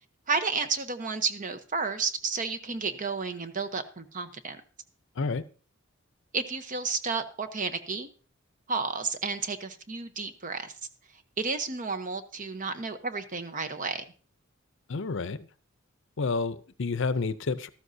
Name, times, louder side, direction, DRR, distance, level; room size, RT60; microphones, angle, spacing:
voice 1, 0.3-4.6 6.3-8.1 8.7-10.7 11.4-14.0, right 4 dB, 40° right, 0.9 m, -31 dB
voice 2, 14.9-15.5 16.2-17.7, left 4 dB, 65° left, 0.6 m, -29 dB
13.5 x 12.5 x 2.7 m
head